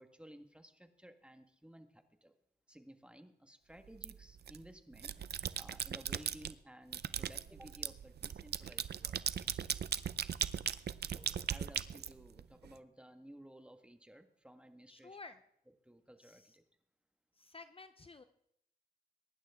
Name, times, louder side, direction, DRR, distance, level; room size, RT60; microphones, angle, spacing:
voice 1, 0.0-2.3 2.7-9.7 11.0-15.2 15.8-16.6, right 1 dB, 5° right, 7 dB, 1.6 m, -57 dB
sound 1, 4.0-4.6 5.0-6.5 6.9-12.7, right 8 dB, 75° right, 0.6 m, -38 dB
voice 2, 14.8-15.4 16.2-16.6 17.3-18.2, left 3 dB, 35° left, 10 dB, 0.7 m, -53 dB
22.5 x 11.0 x 3.6 m, 0.72 s
cardioid pair, 70°, 17 cm